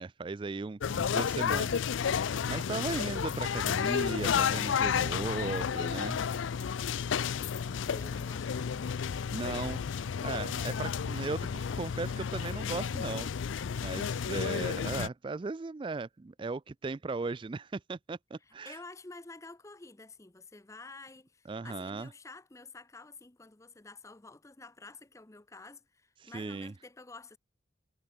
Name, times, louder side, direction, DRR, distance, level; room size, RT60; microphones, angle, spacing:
voice 1, 0.0-6.2 9.3-9.8 10.2-13.3 13.8-18.8 21.5-22.1 26.2-26.7, right 3 dB, 25° right, 0.3 m, -37 dB
sound 1, 0.8-15.1, left 7 dB, 90° left, 0.4 m, -32 dB
voice 2, 2.9-3.3 6.9-9.0 10.5-10.9 18.7-27.4, left 3 dB, 15° left, 0.7 m, -50 dB
head